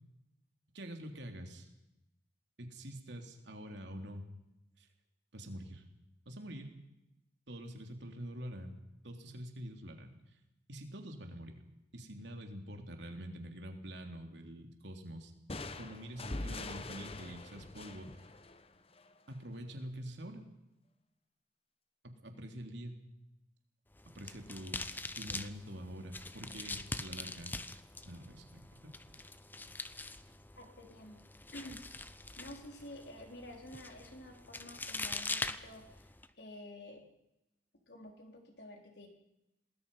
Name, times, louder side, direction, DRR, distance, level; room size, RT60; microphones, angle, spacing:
voice 1, 0.7-1.7 2.6-4.2 4.8-4.9 5.3-5.8 6.2-6.7 7.5-8.8 9.0-10.1 10.7-11.6 11.9-15.3 15.8-18.1 19.3-20.4 22.0-22.9 24.1-24.8 25.2-27.6 28.0-28.6, equal, 70° right, 4 dB, 3.2 m, -46 dB
sound 1, 15.5-19.2, left 2 dB, 30° left, 1.1 m, -43 dB
sound 2, 23.9-36.3, left 2 dB, 10° left, 0.7 m, -44 dB
voice 2, 30.5-31.2 31.5-37.0 37.9-39.1, left 1 dB, 60° left, 3 dB, 3.9 m, -50 dB
27.5 x 20.0 x 5.6 m, 0.91 s
head